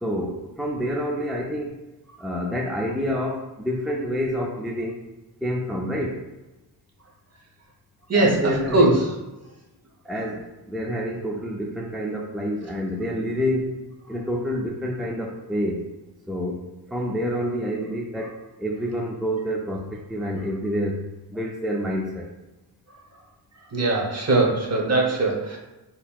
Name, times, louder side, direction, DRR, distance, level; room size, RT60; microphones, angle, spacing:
voice 1, 0.0-1.8 2.2-5.0 5.4-6.2 8.1-9.0 10.0-13.8 14.1-15.8 16.3-22.3, equal, ahead, -1 dB, 0.3 m, -28 dB
voice 2, 8.1-9.0 23.7-25.6, right 2 dB, 40° right, -1 dB, 0.8 m, -21 dB
4.0 x 2.8 x 2.3 m, 1.1 s
wide cardioid pair, 85°, 41 cm